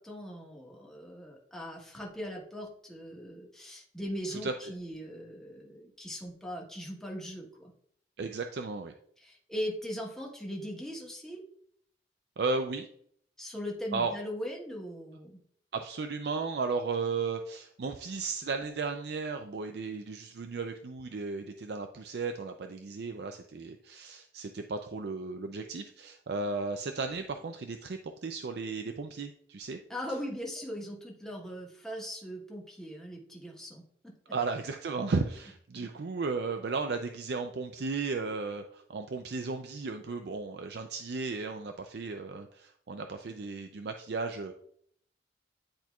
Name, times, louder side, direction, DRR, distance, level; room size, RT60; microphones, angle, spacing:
voice 1, 0.0-7.7 9.2-11.4 13.4-15.4 29.9-34.3, equal, 5° left, -2 dB, 1.2 m, -40 dB
voice 2, 8.2-8.9 12.4-12.9 13.9-14.1 15.7-29.8 34.3-44.5, right 4 dB, 65° right, 5 dB, 0.4 m, -35 dB
10.0 x 4.4 x 2.3 m, 0.64 s
head